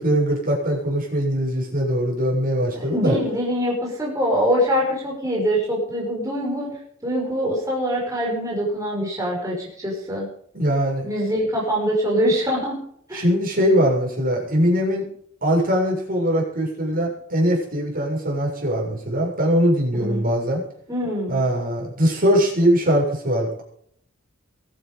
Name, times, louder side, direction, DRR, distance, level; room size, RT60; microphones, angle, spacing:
voice 1, 0.0-3.2 10.5-11.1 13.1-15.0 15.4-20.6 21.3-23.6, equal, 45° right, -2 dB, 7.1 m, -21 dB
voice 2, 2.7-6.7 7.0-10.3 11.0-12.8 13.1-13.2 19.9-20.3 20.9-21.4, equal, 15° right, -4 dB, 5.6 m, -24 dB
23.0 x 9.5 x 5.2 m, 0.65 s
head